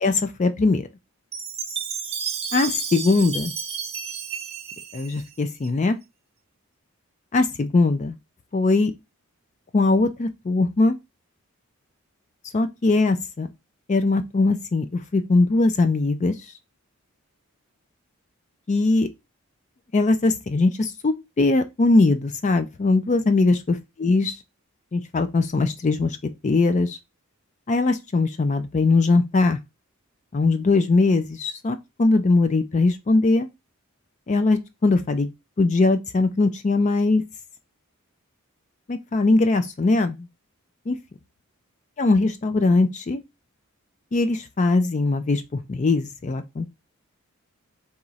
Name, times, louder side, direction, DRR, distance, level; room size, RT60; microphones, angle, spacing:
voice 1, 0.0-0.9 2.5-3.5 4.9-6.0 7.3-8.1 8.5-8.9 9.7-11.0 12.5-13.5 13.9-16.3 18.7-19.1 19.9-24.4 24.9-26.2 26.4-27.0 27.7-29.6 30.3-33.5 34.3-35.3 35.6-37.2 38.9-40.3 40.9-41.0 42.0-43.2 44.1-46.7, left 3 dB, 30° left, 0.4 m, -21 dB
Chime, 1.3-5.7, right 6 dB, 25° right, 0.6 m, -32 dB
3.7 x 3.0 x 4.0 m
head